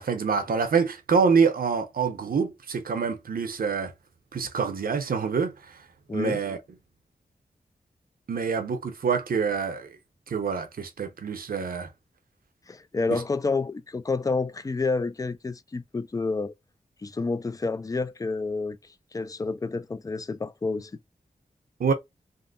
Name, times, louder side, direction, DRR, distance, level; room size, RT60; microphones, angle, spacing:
voice 1, 0.0-3.9 4.3-5.8 6.1-6.6 8.3-9.9 10.3-11.9 13.1-13.2 21.8-21.9, right 5 dB, 80° right, 0.7 m, -26 dB
voice 2, 6.1-6.4 12.7-16.5 17.0-18.8 19.1-20.9, left 3 dB, 25° left, 0.3 m, -29 dB
3.6 x 2.1 x 2.4 m
wide cardioid pair, 80°, 15 cm